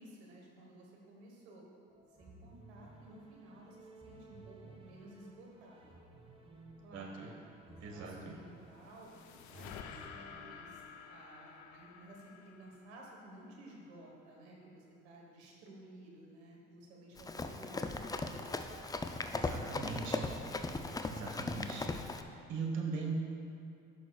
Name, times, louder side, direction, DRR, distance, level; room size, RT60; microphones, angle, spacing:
voice 1, 0.0-1.6 2.2-5.9 6.8-7.3 7.7-18.7 19.4-20.2 21.1-21.8, right 1 dB, 85° right, -1 dB, 1.3 m, -55 dB
sound 1, 1.9-10.6, right 2 dB, 15° right, 1.2 m, -57 dB
voice 2, 6.9-7.3 7.8-8.3 19.3-20.2 21.1-21.9 22.5-23.1, right 4 dB, 60° right, 1 dB, 1.4 m, -40 dB
sound 2, 8.4-13.8, left 6 dB, 60° left, 0.7 m, -52 dB
Run, 17.2-22.2, left 3 dB, 10° left, 0.4 m, -38 dB
11.0 x 6.2 x 2.3 m, 2.6 s
hypercardioid pair, 60°, 32 cm